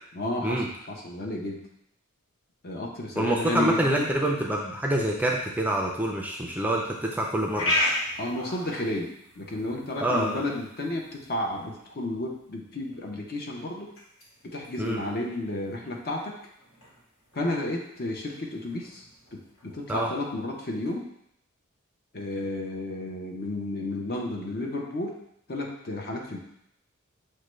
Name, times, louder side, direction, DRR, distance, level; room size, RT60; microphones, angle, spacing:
voice 1, 0.1-1.7 2.6-4.1 8.2-13.9 14.4-16.4 17.3-19.0 19.6-21.1 22.1-25.2 25.5-26.4, left 1 dB, 50° left, -1 dB, 0.7 m, -32 dB
voice 2, 3.2-7.8 10.0-10.4 14.8-15.0 19.9-20.1, right 1 dB, 10° right, -1 dB, 0.4 m, -26 dB
sound 1, 6.9-20.9, left 1 dB, 70° left, 1.6 m, -37 dB
6.5 x 2.2 x 3.1 m, 0.74 s
head